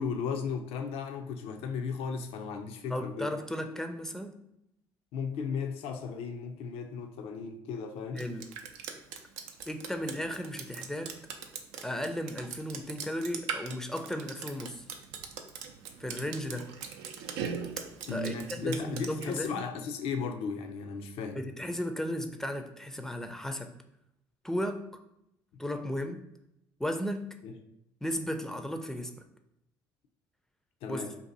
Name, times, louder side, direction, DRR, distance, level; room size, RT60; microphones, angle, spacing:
voice 1, 0.0-3.3 5.1-8.2 18.1-21.4 27.4-27.5 30.8-31.1, left 5 dB, 70° left, 5 dB, 0.4 m, -35 dB
voice 2, 2.9-4.4 8.1-8.5 9.7-11.1 11.8-14.8 16.0-16.7 18.1-19.6 21.4-23.7 24.4-24.8 25.6-26.2 26.8-27.3 28.0-29.3 30.9-31.0, equal, 5° left, 6 dB, 0.4 m, -35 dB
Drip, 8.2-19.5, right 7 dB, 80° right, 0.4 m, -40 dB
2.7 x 2.5 x 3.9 m, 0.81 s
supercardioid pair, 75°, 10 cm